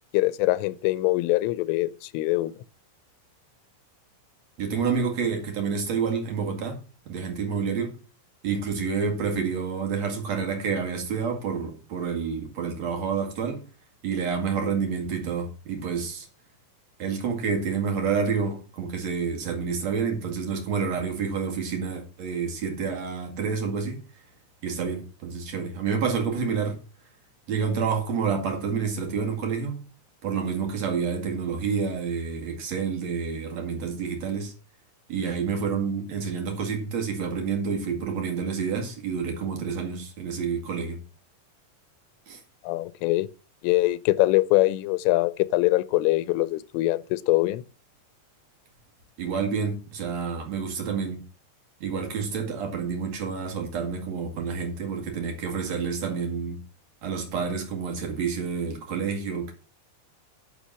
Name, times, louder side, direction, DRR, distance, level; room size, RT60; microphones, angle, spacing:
voice 1, 0.1-2.5 42.6-43.3 43.6-47.6, left 19 dB, 90° left, 3.2 m, -23 dB
voice 2, 4.6-6.8 7.1-7.9 8.4-13.6 14.0-16.3 17.0-24.2 24.6-26.8 27.5-29.8 30.2-34.5 35.1-41.0 42.3-42.4 49.2-51.2 51.8-56.6 57.0-59.5, right 6 dB, 50° right, 2.4 m, -28 dB
10.5 x 5.6 x 6.1 m
omnidirectional pair, 5.6 m